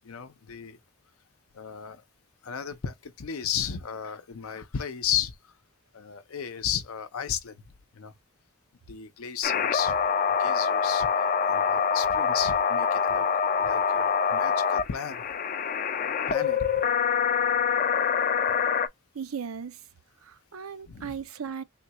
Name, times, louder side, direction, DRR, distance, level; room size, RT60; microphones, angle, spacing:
voice 1, 0.0-0.8 1.5-2.0 2.4-5.4 5.9-7.6 7.9-8.1 8.9-10.0 10.4-11.1 11.5-13.3 13.6-15.2 16.3-16.7 20.9-21.2, left 9 dB, 90° left, 0.6 m, -34 dB
sound 1, 9.4-18.9, left 6 dB, 40° left, 0.3 m, -25 dB
voice 2, 19.1-19.8 20.2-21.6, right 6 dB, 85° right, 0.6 m, -37 dB
3.7 x 2.3 x 2.9 m
head